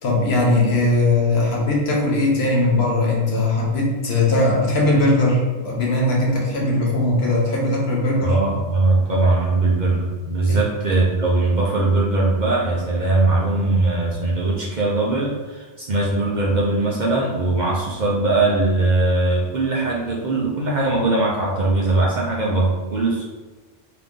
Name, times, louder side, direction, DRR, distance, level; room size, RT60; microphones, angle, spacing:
voice 1, 0.0-8.4 10.5-10.6, left 2 dB, 65° left, -2 dB, 1.1 m, -19 dB
voice 2, 8.2-23.2, right 2 dB, 50° right, -5 dB, 0.6 m, -20 dB
3.7 x 2.8 x 3.7 m, 1.3 s
omnidirectional pair, 1.2 m